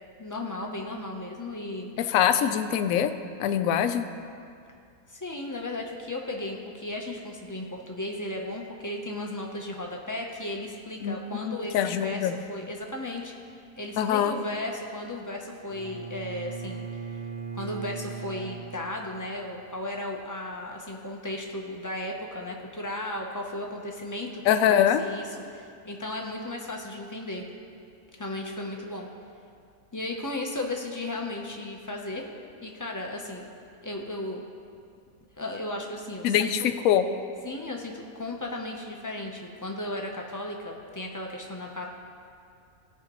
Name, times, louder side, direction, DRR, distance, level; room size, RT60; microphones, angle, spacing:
voice 1, 0.2-1.9 5.1-13.3 13.8-17.2 17.5-27.5 28.2-29.1 29.9-32.2 32.6-33.4 33.8-34.4 35.4-36.5 37.4-41.9, left 1 dB, 30° left, 0 dB, 0.3 m, -35 dB
voice 2, 2.0-3.1 3.4-4.1 11.0-12.3 14.0-14.3 24.5-25.0 36.2-37.0, left 9 dB, 70° left, 9 dB, 0.9 m, -23 dB
Bowed string instrument, 15.7-19.5, right 6 dB, 65° right, 1.3 m, -39 dB
17.0 x 5.7 x 3.0 m, 2.4 s
omnidirectional pair, 1.6 m